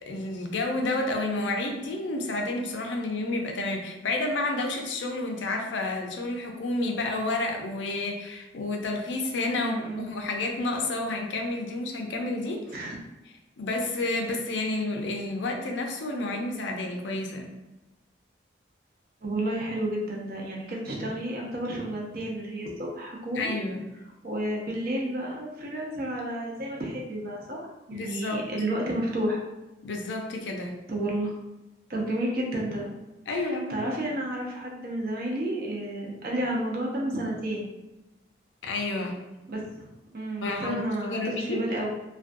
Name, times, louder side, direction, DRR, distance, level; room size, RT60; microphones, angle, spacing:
voice 1, 0.0-12.6 13.6-17.5 23.3-23.9 27.9-28.4 29.8-30.7 33.3-34.0 38.6-39.2 40.4-40.8 41.1-41.7, left 2 dB, 75° left, 2 dB, 0.5 m, -30 dB
voice 2, 9.6-10.1 12.7-13.0 19.2-23.6 24.2-29.4 30.9-31.3 31.9-32.9 33.3-37.7 39.5-39.9 40.1-41.9, right 1 dB, 50° right, -2 dB, 0.6 m, -31 dB
2.4 x 2.2 x 2.5 m, 1.0 s
head